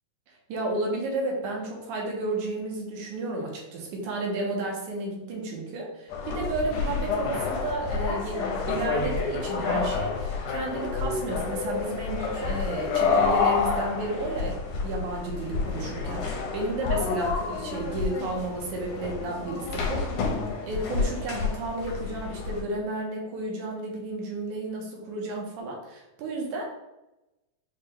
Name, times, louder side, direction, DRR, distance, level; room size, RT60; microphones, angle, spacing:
voice 1, 0.5-20.1 20.6-26.6, right 2 dB, 85° right, -1 dB, 2.4 m, -32 dB
sound 1, 6.1-22.6, left 4 dB, 80° left, 2.3 m, -29 dB
6.3 x 2.2 x 3.5 m, 0.96 s
omnidirectional pair, 3.5 m